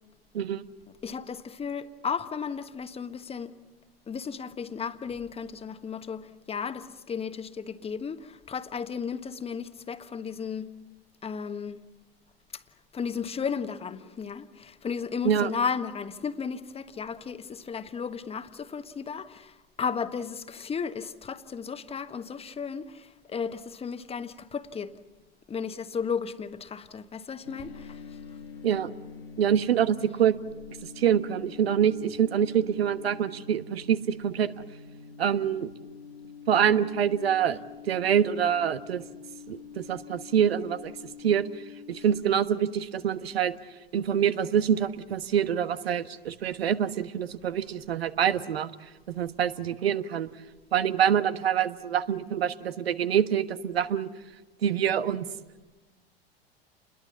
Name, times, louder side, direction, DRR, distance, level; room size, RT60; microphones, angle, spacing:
voice 1, 1.0-3.5 4.1-10.7 11.2-11.8 12.5-12.6 12.9-25.0 25.5-28.2, left 6 dB, 20° left, 1.3 m, -34 dB
sound 1, 27.4-42.2, left 6 dB, 85° left, 1.9 m, -46 dB
voice 2, 29.4-30.4 31.0-34.5 35.2-35.7 36.5-37.6 37.9-39.0 39.5-40.9 41.2-41.4 41.9-43.5 43.9-48.7 49.1-50.3 50.7-54.1 54.6-55.3, right 9 dB, 75° right, 1.3 m, -25 dB
29.5 x 21.0 x 7.2 m
figure-of-eight pair, 90°, 31 cm